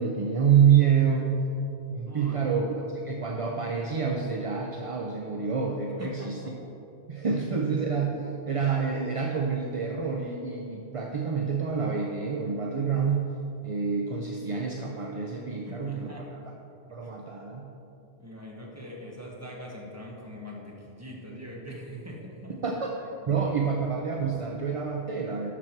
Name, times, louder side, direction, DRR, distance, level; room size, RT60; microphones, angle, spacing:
voice 1, 0.0-1.3 1.9-6.4 7.1-13.3 13.6-16.1 16.9-17.7 22.6-23.0 23.3-25.5, right 6 dB, 40° right, 1 dB, 0.5 m, -27 dB
voice 2, 2.0-2.4 6.0-6.5 7.3-7.6 15.6-16.3 16.9-17.1 18.2-22.6 23.3-23.4, equal, 15° right, -3 dB, 1.5 m, -42 dB
12.0 x 6.2 x 4.5 m, 2.9 s
omnidirectional pair, 1.1 m